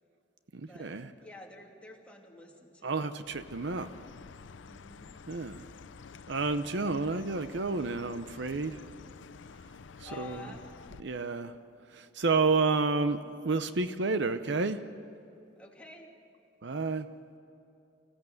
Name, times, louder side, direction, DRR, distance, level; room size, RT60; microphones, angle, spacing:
voice 1, 0.5-1.1 2.8-3.9 5.3-5.7 6.3-8.8 10.0-10.5 11.0-11.6 11.9-13.2 13.4-14.8 16.6-17.1, right 3 dB, 65° right, 11 dB, 0.7 m, -30 dB
voice 2, 1.2-3.1 4.7-5.2 9.7-10.6 15.6-16.1, left 2 dB, 5° left, -1 dB, 2.6 m, -50 dB
Chirp tweet, 3.2-11.0, left 5 dB, 80° left, 0.5 m, -49 dB
25.0 x 16.0 x 7.8 m, 2.7 s
head